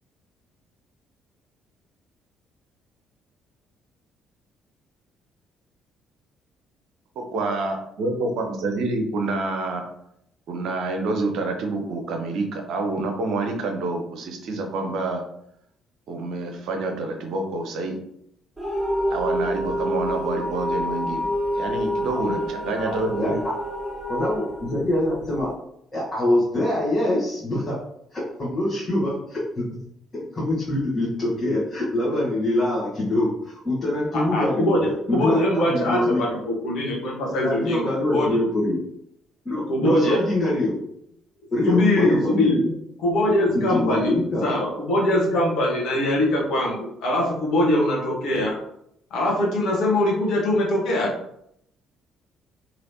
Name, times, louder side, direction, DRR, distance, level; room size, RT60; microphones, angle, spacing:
voice 1, 7.3-9.8 10.5-15.2 16.1-18.0 19.1-21.3 21.6-23.4, right 2 dB, 60° right, 3 dB, 0.6 m, -27 dB
sound 1, 18.6-25.5, equal, 5° right, 1.4 m, -27 dB
voice 2, 22.7-23.5 24.1-25.5 25.9-27.8 28.1-29.6 30.3-34.7 35.1-36.2 37.4-38.8 39.4-40.7 41.5-42.7 43.5-44.4, left 1 dB, 30° left, -7 dB, 1.2 m, -24 dB
voice 3, 34.1-38.4 39.7-40.2 41.7-42.6 43.0-48.6 49.1-51.1, left 1 dB, 60° left, -3 dB, 1.1 m, -22 dB
3.2 x 2.9 x 2.7 m, 0.75 s
figure-of-eight pair, 45°, 0 cm